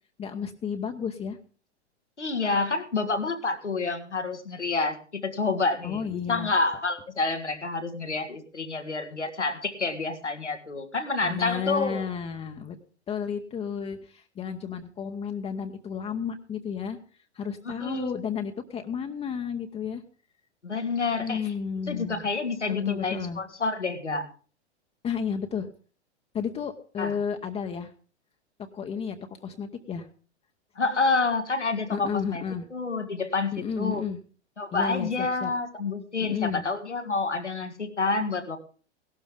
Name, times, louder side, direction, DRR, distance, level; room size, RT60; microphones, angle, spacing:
voice 1, 0.2-1.4 5.8-6.5 11.2-12.8 13.1-17.0 17.3-20.0 21.2-22.2 22.7-23.4 25.0-25.7 26.3-27.9 28.7-30.1 31.9-32.7 33.5-34.2 34.7-35.5 36.2-36.6, left 6 dB, 20° left, 5 dB, 0.8 m, -32 dB
voice 2, 2.2-12.0 17.6-18.0 20.6-21.5 21.9-24.2 27.0-27.2 30.7-32.4 32.7-34.0 34.6-38.6, left 3 dB, 90° left, 7 dB, 1.8 m, -28 dB
17.0 x 12.0 x 3.7 m, 0.39 s
figure-of-eight pair, 100°, 34 cm